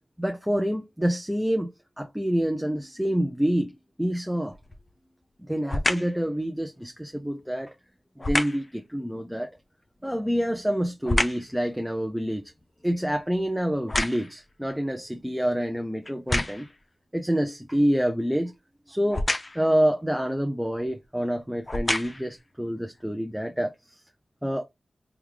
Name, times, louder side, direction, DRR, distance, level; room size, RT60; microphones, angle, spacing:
voice 1, 0.2-1.7 2.0-4.6 5.4-7.7 8.2-9.5 10.0-12.4 12.8-16.7 17.1-18.5 18.9-19.3 19.5-24.0 24.4-24.6, equal, 5° right, 0.6 m, -27 dB
sound 1, 4.5-4.9 5.7-6.2 8.2-8.7 10.1-11.5 12.0-14.5 15.2-15.3 16.1-16.8 19.1-19.7 20.7-20.9 21.5-22.4 23.0-23.1, left 2 dB, 35° left, 0.6 m, -29 dB
3.4 x 2.4 x 3.2 m
cardioid pair, 55°, 0 cm